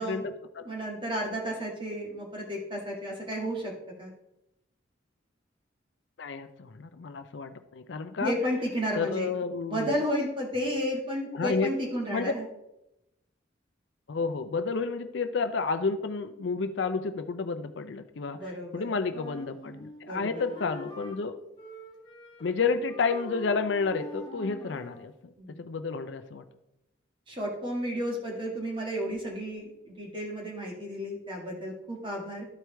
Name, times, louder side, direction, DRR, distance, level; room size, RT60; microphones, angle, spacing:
voice 1, 0.0-0.7 6.2-8.3 8.9-10.0 11.3-11.7 12.1-12.3 14.1-21.4 22.4-25.3 25.6-26.4, left 4 dB, 65° left, 10 dB, 0.5 m, -31 dB
voice 2, 0.7-3.7 4.0-4.1 8.2-9.4 9.7-12.4 18.3-18.9 20.1-20.5 25.4-25.7 27.3-29.7 30.0-32.5, equal, 25° right, -2 dB, 1.9 m, -32 dB
Wind instrument woodwind instrument, 19.1-21.2 21.6-22.6 22.9-25.1, left 2 dB, 20° left, 1.4 m, -44 dB
13.0 x 4.7 x 3.4 m, 0.86 s
head